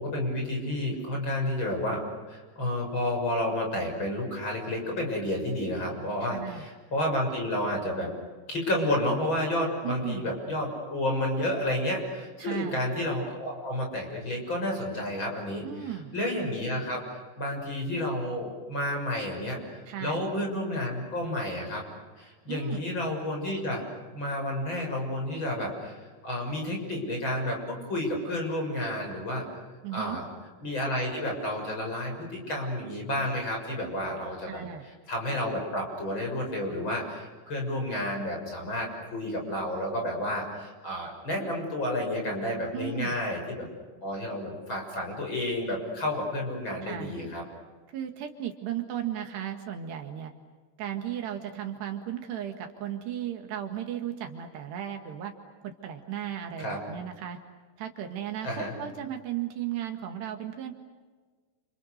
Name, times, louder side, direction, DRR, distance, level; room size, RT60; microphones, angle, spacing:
voice 1, 0.0-2.0 2.3-8.1 8.5-21.8 22.2-23.8 24.1-29.4 29.9-30.2 30.6-34.6 35.1-43.7 44.0-47.4 56.6-56.8 58.4-58.7, left 1 dB, 25° left, 1 dB, 7.1 m, -31 dB
voice 2, 6.2-6.7 9.8-10.3 12.4-12.8 15.6-16.1 19.9-20.2 22.5-22.8 29.8-30.2 34.5-34.9 42.7-43.2 46.8-47.1 47.9-50.3 50.8-55.3 55.6-57.4 57.8-60.7, right 10 dB, 70° right, 5 dB, 3.9 m, -35 dB
29.5 x 29.5 x 6.7 m, 1.4 s
omnidirectional pair, 5.1 m